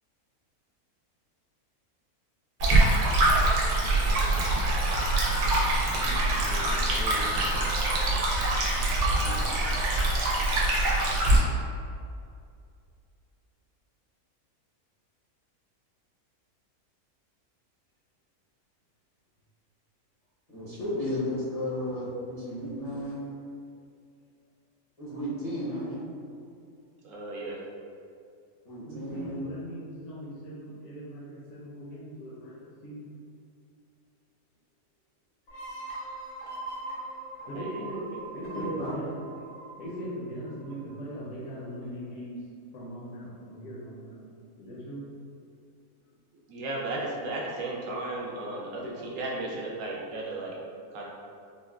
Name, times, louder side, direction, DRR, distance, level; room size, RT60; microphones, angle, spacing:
Stream, 2.6-11.4, right 2 dB, 90° right, 1.1 m, -24 dB
voice 1, 6.0-7.3 9.2-9.6 20.5-23.2 25.0-26.0 28.6-29.4 38.5-39.0, equal, 40° left, -12 dB, 0.5 m, -34 dB
voice 2, 27.0-27.6 37.5-37.8 38.1-38.2 46.5-50.5 50.9-51.0, right 2 dB, 70° right, -3 dB, 0.9 m, -35 dB
voice 3, 28.9-33.1 37.5-38.0 38.3-39.2 39.8-42.4 42.7-44.2 44.6-45.0, equal, 65° left, -8 dB, 0.9 m, -40 dB
sound 1, 35.5-40.9, right 2 dB, 85° left, 1.2 m, -41 dB
3.6 x 2.1 x 2.3 m, 2.4 s
omnidirectional pair, 1.5 m